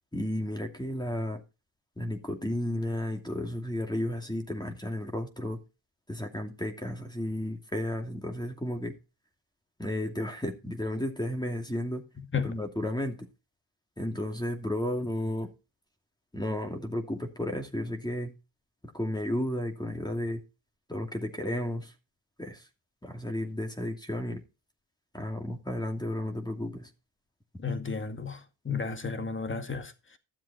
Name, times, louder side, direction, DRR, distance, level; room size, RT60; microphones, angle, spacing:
voice 1, 0.1-1.4 2.0-5.6 6.1-9.0 9.8-12.0 12.4-13.3 14.0-15.5 16.3-18.3 18.9-20.4 20.9-21.9 22.4-22.7 23.0-24.4 25.1-26.9, left 1 dB, 10° left, 2.5 m, -33 dB
voice 2, 27.6-30.2, left 5 dB, 25° left, 2.0 m, -33 dB
13.0 x 7.4 x 4.3 m
supercardioid pair, 70°, 45 cm